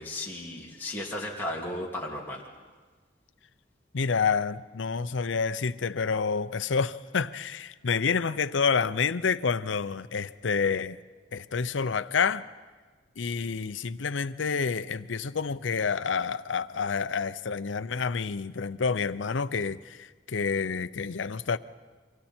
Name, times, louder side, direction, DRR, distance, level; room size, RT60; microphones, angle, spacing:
voice 1, 0.0-2.4, left 1 dB, 10° left, 2.6 m, -35 dB
voice 2, 3.9-11.0 11.3-12.4 13.2-21.6, left 5 dB, 90° left, 0.6 m, -28 dB
29.5 x 24.5 x 4.4 m
head